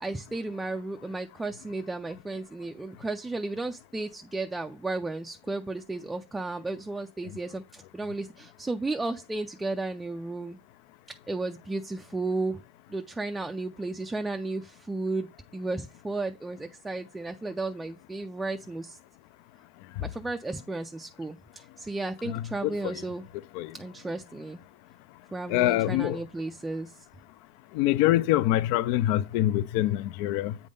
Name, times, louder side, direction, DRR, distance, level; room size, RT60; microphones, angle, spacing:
voice 1, 0.0-10.6 11.3-12.6 12.9-19.0 20.0-23.3 23.7-24.6 25.3-26.9, right 2 dB, 5° right, 0.4 m, -34 dB
voice 2, 22.3-23.0 23.5-23.7 25.5-26.2 27.7-30.6, left 14 dB, 55° left, 0.4 m, -25 dB
8.4 x 3.6 x 5.2 m
supercardioid pair, 155°, 0 cm